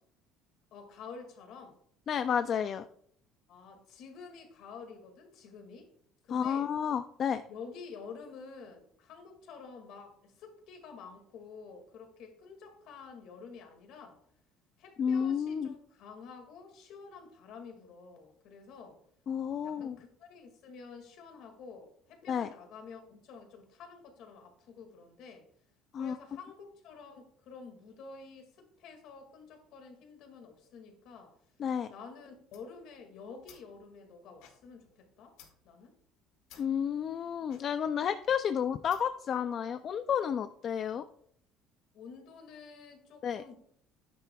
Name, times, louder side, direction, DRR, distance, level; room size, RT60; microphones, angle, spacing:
voice 1, 0.7-1.8 3.5-5.9 6.2-6.7 7.5-14.2 14.8-19.0 19.6-25.5 25.9-31.3 31.9-35.4 35.6-35.9 41.9-43.5, left 5 dB, 55° left, 5 dB, 2.0 m, -49 dB
voice 2, 2.1-2.8 6.3-7.4 15.0-15.7 19.3-20.0 22.3-22.5 25.9-26.2 31.6-31.9 36.6-41.1 43.2-43.4, left 8 dB, 30° left, 10 dB, 0.3 m, -31 dB
sound 1, 32.4-39.3, left 9 dB, 85° left, 2.2 m, -61 dB
12.5 x 10.0 x 2.3 m, 0.65 s
cardioid pair, 180°, 0 cm